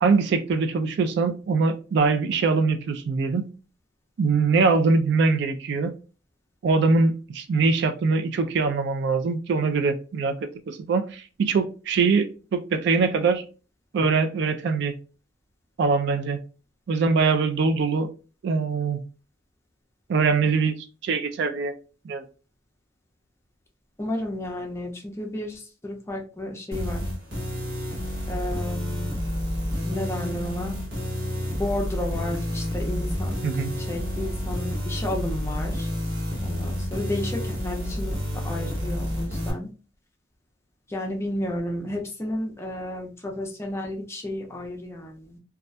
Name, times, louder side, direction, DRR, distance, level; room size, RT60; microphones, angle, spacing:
voice 1, 0.0-3.5 4.2-5.9 6.6-10.4 10.7-13.4 13.9-14.9 15.8-16.4 16.9-18.1 18.4-19.0 20.1-20.7 21.0-21.7 22.0-22.2 33.4-33.7, right 4 dB, 60° right, 8 dB, 0.3 m, -23 dB
voice 2, 24.0-27.1 28.3-29.2 29.8-30.8 31.5-33.3 33.8-35.9 36.4-39.7 40.9-45.4, left 1 dB, 15° left, 1 dB, 0.5 m, -32 dB
sound 1, 26.7-39.5, equal, 80° right, 0.9 m, -29 dB
2.3 x 2.1 x 2.6 m, 0.35 s
head